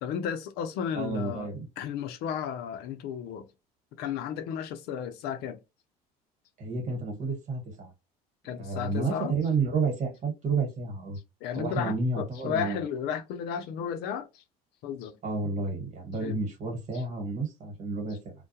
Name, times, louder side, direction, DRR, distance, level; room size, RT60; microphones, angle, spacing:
voice 1, 0.0-1.5 1.8-3.5 4.0-5.6 8.4-9.3 11.4-14.4 14.8-15.2 16.2-16.4 18.1-18.2, left 8 dB, 70° left, 0.5 m, -33 dB
voice 2, 0.9-1.7 6.6-7.9 8.6-11.2 11.5-12.8 15.2-18.3, right 4 dB, 45° right, 1.4 m, -30 dB
2.2 x 2.2 x 2.7 m
supercardioid pair, 100°, 17 cm